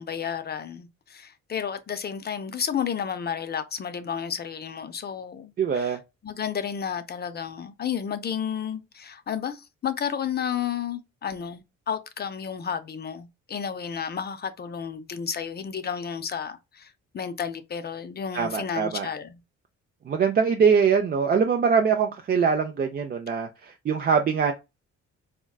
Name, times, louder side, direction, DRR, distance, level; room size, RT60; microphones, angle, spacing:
voice 1, 0.0-6.0 6.2-19.4, left 7 dB, 35° left, 0.5 m, -32 dB
voice 2, 5.6-6.0 18.3-19.1 20.1-24.5, right 6 dB, 35° right, 0.4 m, -23 dB
3.6 x 2.2 x 2.3 m
cardioid pair, 90°, 30 cm